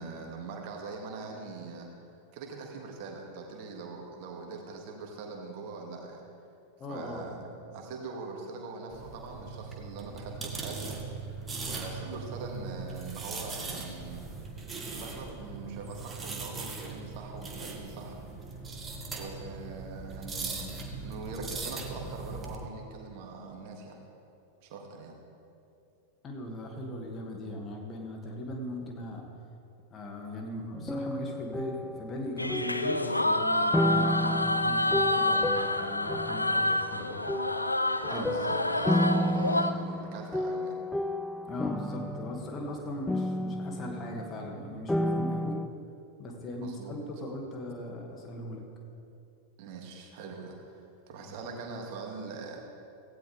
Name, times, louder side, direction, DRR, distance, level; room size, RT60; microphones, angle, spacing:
voice 1, 0.0-1.9 2.3-6.2 6.9-11.4 11.6-14.2 14.9-18.2 19.1-20.7 21.0-24.0 24.6-25.2 38.1-40.8 46.6-47.0 49.6-50.7 51.1-52.6, right 4 dB, 45° right, 1 dB, 2.3 m, -42 dB
voice 2, 6.8-7.4 26.2-29.3 29.9-37.2 37.5-37.6 38.1-38.3 41.5-45.6 46.2-48.6, left 1 dB, 25° left, 1 dB, 2.2 m, -39 dB
sound 1, 8.9-22.6, right 4 dB, 15° right, 1.9 m, -40 dB
sound 2, 30.7-33.2 33.7-36.9 37.3-44.6 44.9-45.7, left 1 dB, 5° left, 0.5 m, -32 dB
sound 3, 32.4-39.7, left 1 dB, 85° left, 0.5 m, -28 dB
17.0 x 16.0 x 3.5 m, 2.7 s
figure-of-eight pair, 90°, 0 cm